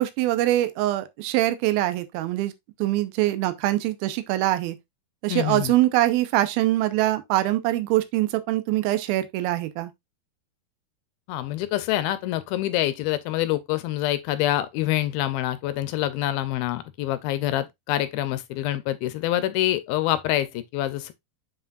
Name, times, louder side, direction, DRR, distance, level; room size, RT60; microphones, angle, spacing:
voice 1, 0.0-2.5 2.8-4.8 5.2-9.9, right 15 dB, 80° right, 2.5 m, -23 dB
voice 2, 5.3-5.7 11.3-21.1, left 14 dB, 80° left, 2.3 m, -26 dB
7.4 x 5.4 x 2.4 m
omnidirectional pair, 4.5 m